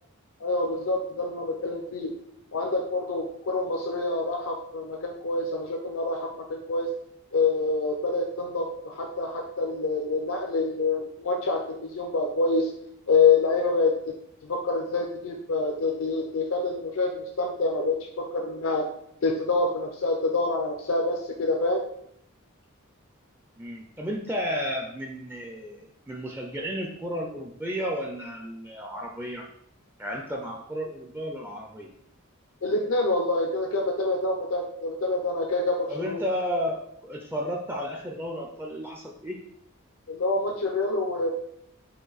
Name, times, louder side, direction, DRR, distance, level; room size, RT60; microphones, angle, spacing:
voice 1, 0.4-2.1 2.5-6.9 7.3-12.7 13.1-14.1 14.4-18.9 19.2-21.8 32.6-36.2 40.1-41.3, left 3 dB, 65° left, 2 dB, 0.5 m, -26 dB
voice 2, 23.6-29.4 30.0-31.9 35.9-39.4, equal, 10° right, 0 dB, 0.4 m, -33 dB
5.1 x 2.6 x 3.9 m, 0.73 s
head